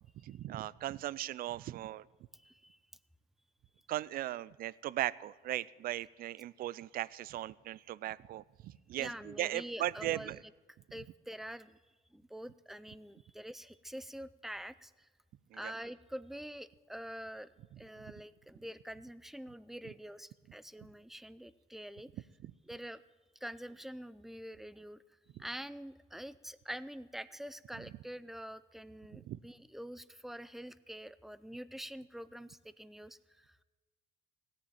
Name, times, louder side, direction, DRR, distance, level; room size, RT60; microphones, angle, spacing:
voice 1, 0.2-2.1 3.9-10.4 15.5-15.7 18.0-18.1 20.8-20.9 22.4-22.5 29.1-29.4, right 14 dB, 60° right, 21 dB, 0.4 m, -38 dB
voice 2, 2.3-2.8 8.9-10.4 10.9-11.8 12.1-15.1 15.5-17.5 17.8-22.1 22.7-23.0 23.4-25.0 25.4-33.6, equal, ahead, 15 dB, 0.5 m, -46 dB
16.0 x 7.2 x 9.3 m, 1.2 s
cardioid pair, 110°, 17 cm